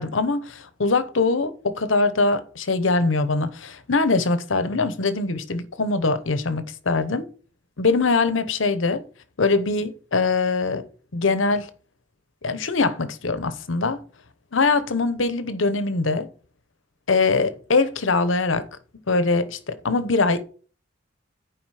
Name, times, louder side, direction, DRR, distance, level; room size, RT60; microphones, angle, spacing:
voice 1, 0.0-7.3 7.8-9.0 9.4-10.9 11.1-11.7 12.4-14.0 14.5-16.3 17.1-18.7 19.1-20.4, left 3 dB, 85° left, 1.0 m, -22 dB
11.0 x 5.0 x 4.9 m
head